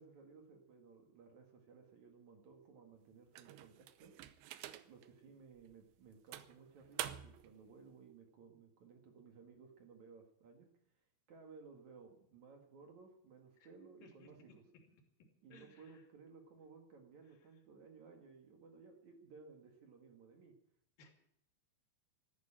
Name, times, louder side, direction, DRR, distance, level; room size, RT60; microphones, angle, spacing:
voice 1, 0.0-4.4 4.8-10.7 11.3-14.5 15.4-20.6, right 5 dB, 50° right, 3 dB, 2.6 m, -59 dB
sound 1, 3.3-5.1 5.6-5.7 6.3-7.5, right 13 dB, 90° right, 3.1 m, -47 dB
voice 2, 15.5-16.0 21.0-21.1, left 3 dB, 55° left, 2 dB, 4.2 m, -61 dB
14.0 x 11.5 x 8.9 m, 0.71 s
omnidirectional pair, 5.0 m